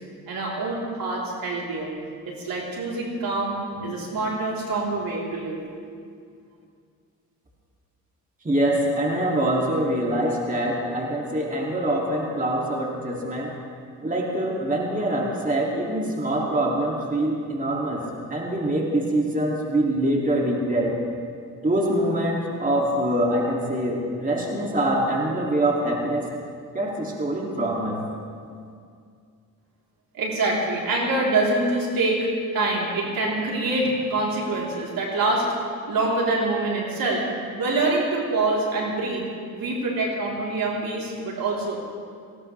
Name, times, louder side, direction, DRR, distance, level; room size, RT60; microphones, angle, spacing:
voice 1, 0.3-1.9 2.2-5.6 30.1-32.3 32.5-35.5 35.9-37.2 37.6-39.3 39.5-41.8, right 2 dB, 70° right, -3 dB, 3.7 m, -25 dB
voice 2, 8.4-13.5 14.0-20.9 21.6-26.3 26.7-28.0, right 1 dB, 20° right, -2 dB, 2.6 m, -24 dB
19.0 x 17.5 x 3.4 m, 2.3 s
cardioid pair, 75°, 37 cm